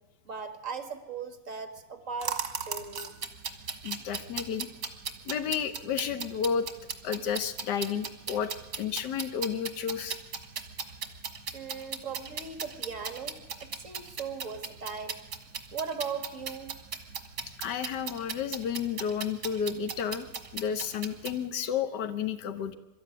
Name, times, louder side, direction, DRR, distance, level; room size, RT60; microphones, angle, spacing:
voice 1, 0.3-3.2 11.5-15.2 15.7-16.8, right 5 dB, 50° right, 8 dB, 2.1 m, -38 dB
sound 1, 2.2-21.4, right 6 dB, 65° right, 2.2 m, -37 dB
voice 2, 3.8-4.7 5.2-6.7 7.0-8.5 8.8-10.2 17.6-22.8, left 7 dB, 85° left, 11 dB, 1.5 m, -31 dB
23.5 x 13.0 x 9.6 m, 1.1 s
omnidirectional pair, 1.8 m